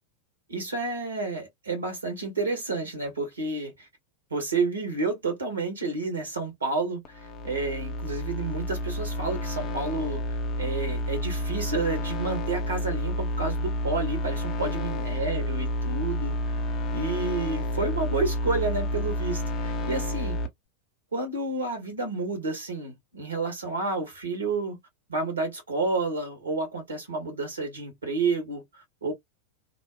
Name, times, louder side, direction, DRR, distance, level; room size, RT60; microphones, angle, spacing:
voice 1, 0.5-3.9 4.3-16.4 16.9-20.4 21.1-24.8 25.1-29.1, right 3 dB, 70° right, 1.3 m, -30 dB
sound 1, 7.0-20.5, equal, 35° left, 0.6 m, -30 dB
2.8 x 2.0 x 2.4 m
figure-of-eight pair, 90°, 0 cm